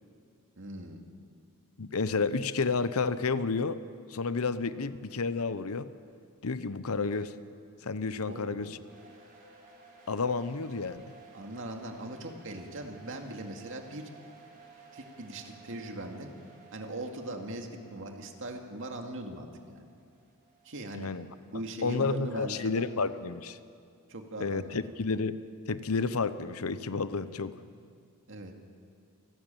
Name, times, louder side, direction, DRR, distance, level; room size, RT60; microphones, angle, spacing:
voice 1, 0.6-1.0 8.3-8.7 11.3-14.1 14.9-16.3 16.7-19.9 20.6-21.1 21.5-22.8 24.1-24.8 27.6-27.7 28.3-28.5, right 1 dB, 60° right, 3 dB, 2.2 m, -40 dB
voice 2, 1.8-3.8 4.1-5.9 6.4-7.3 7.8-8.8 10.1-11.0 20.9-21.3 21.8-23.6 24.4-25.4 25.7-27.5, left 4 dB, 70° left, 13 dB, 0.8 m, -31 dB
sound 1, 8.9-21.7, right 4 dB, 40° right, 5.0 m, -56 dB
28.0 x 12.5 x 9.1 m, 2.3 s
head